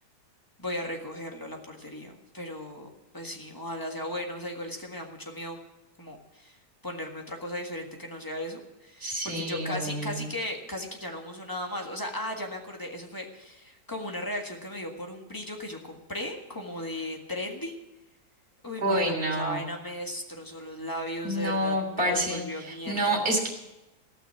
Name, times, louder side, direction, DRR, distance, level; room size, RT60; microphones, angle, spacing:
voice 1, 0.6-2.9 3.1-5.6 6.0-6.6 6.8-17.8 18.6-23.2, left 1 dB, 15° left, 2 dB, 1.6 m, -36 dB
voice 2, 9.0-10.2 18.8-19.6 21.2-22.4 22.7-23.5, right 1 dB, 35° right, 1 dB, 3.4 m, -28 dB
17.0 x 6.1 x 9.4 m, 0.96 s
omnidirectional pair, 1.7 m